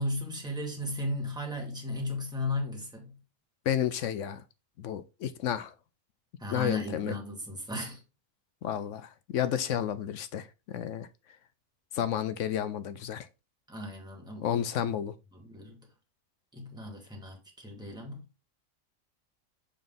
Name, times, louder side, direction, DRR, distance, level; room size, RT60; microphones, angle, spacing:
voice 1, 0.0-3.2 6.4-8.0 13.7-14.6 15.3-15.8 16.5-18.2, left 1 dB, 5° right, 1.6 m, -36 dB
voice 2, 3.7-4.4 4.8-5.7 6.5-7.2 8.6-11.1 11.9-13.3 14.4-15.1, left 10 dB, 70° left, 0.9 m, -31 dB
7.1 x 3.8 x 3.7 m
omnidirectional pair, 1.4 m